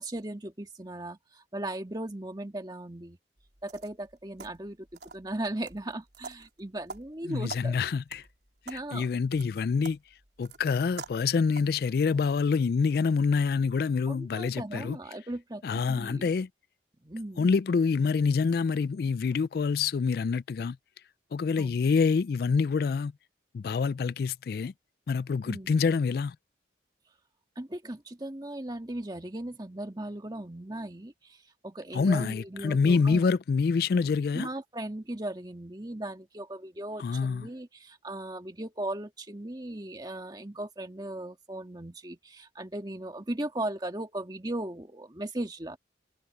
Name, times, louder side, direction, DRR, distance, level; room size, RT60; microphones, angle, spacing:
voice 1, 0.0-3.2 3.6-7.7 8.7-9.1 14.1-16.3 17.0-17.5 21.6-21.8 25.5-25.8 27.6-33.2 34.3-45.8, right 1 dB, 20° right, 1.7 m, -37 dB
sound 1, 3.4-11.9, right 4 dB, 65° right, 3.7 m, -48 dB
voice 2, 7.3-8.2 8.7-10.0 10.4-15.0 15.6-16.5 17.4-20.8 21.3-23.1 23.5-24.7 25.1-26.4 31.9-34.5 37.0-37.5, left 5 dB, 55° left, 0.3 m, -26 dB
head